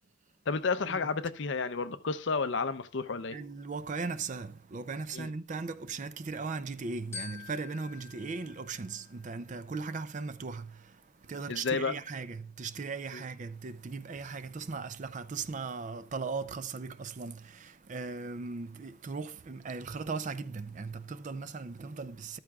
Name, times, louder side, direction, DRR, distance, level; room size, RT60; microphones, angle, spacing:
voice 1, 0.5-3.4 5.1-5.3 11.5-11.9 13.1-13.2, left 4 dB, 60° left, 0.6 m, -31 dB
voice 2, 3.3-22.4, right 4 dB, 35° right, 0.4 m, -38 dB
Glockenspiel, 7.1-9.6, left 5 dB, 15° left, 4.9 m, -47 dB
13.5 x 12.5 x 2.3 m
head